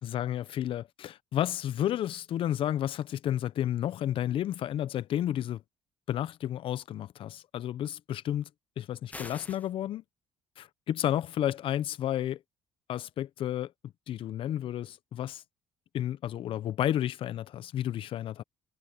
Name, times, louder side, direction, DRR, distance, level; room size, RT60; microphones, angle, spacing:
voice 1, 0.0-5.6 6.1-8.5 8.8-10.0 10.6-12.4 12.9-13.7 14.1-15.4 15.9-18.4, left 11 dB, 60° left, 0.9 m, -31 dB
sound 1, 9.1-9.7, left 2 dB, 15° left, 1.4 m, -44 dB
supercardioid pair, 70°, 10 cm